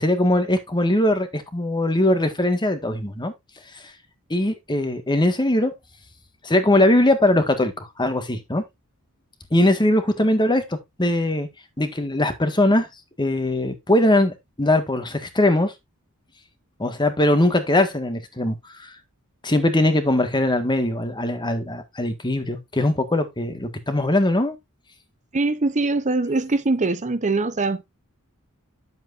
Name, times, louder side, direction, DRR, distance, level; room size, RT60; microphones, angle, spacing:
voice 1, 0.0-3.3 3.7-3.8 4.3-5.7 6.4-8.6 9.5-11.5 11.8-12.9 13.2-15.7 16.8-18.9 19.4-24.6, left 1 dB, 20° left, 1.7 m, -21 dB
voice 2, 25.3-27.8, right 3 dB, 35° right, 0.8 m, -22 dB
10.5 x 7.6 x 2.6 m
head